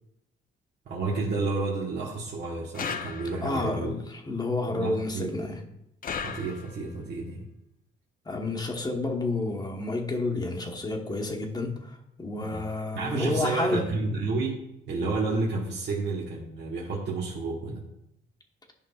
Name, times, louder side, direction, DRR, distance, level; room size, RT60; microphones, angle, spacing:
voice 1, 0.8-3.9 4.7-5.3 6.2-7.5 12.4-12.6 12.9-14.6 14.9-17.8, right 3 dB, 60° right, -5 dB, 1.4 m, -30 dB
sound 1, 2.7-3.7 6.0-7.0, left 6 dB, 45° left, 0.6 m, -36 dB
voice 2, 3.4-5.6 8.2-13.9, left 2 dB, 20° left, 1 dB, 1.1 m, -30 dB
11.0 x 5.3 x 2.4 m, 0.82 s
cardioid pair, 90°, 20 cm